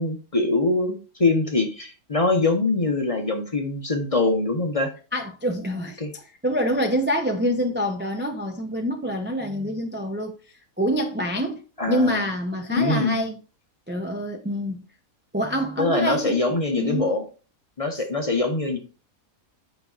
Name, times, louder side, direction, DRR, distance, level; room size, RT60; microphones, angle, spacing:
voice 1, 0.0-4.9 6.0-6.1 11.8-12.3 12.7-13.2 15.8-17.3 17.8-18.8, left 3 dB, 30° left, 0.8 m, -23 dB
voice 2, 5.1-13.4 13.9-14.8 15.3-16.4 16.8-17.1, equal, 15° right, 0.4 m, -26 dB
8.6 x 5.3 x 2.5 m
omnidirectional pair, 1.5 m